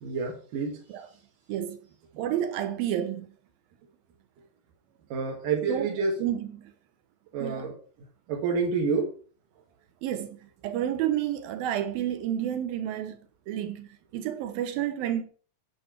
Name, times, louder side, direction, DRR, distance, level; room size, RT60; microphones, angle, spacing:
voice 1, 0.0-0.8 5.1-6.2 7.3-7.7 8.3-9.1, right 4 dB, 70° right, 3.2 m, -28 dB
voice 2, 1.5-1.8 2.2-3.3 5.7-5.9 6.2-6.7 7.4-7.7 10.0-10.4 10.6-13.2 13.5-13.9 14.1-15.2, right 11 dB, 85° right, 2.9 m, -30 dB
10.0 x 4.8 x 7.5 m
omnidirectional pair, 4.0 m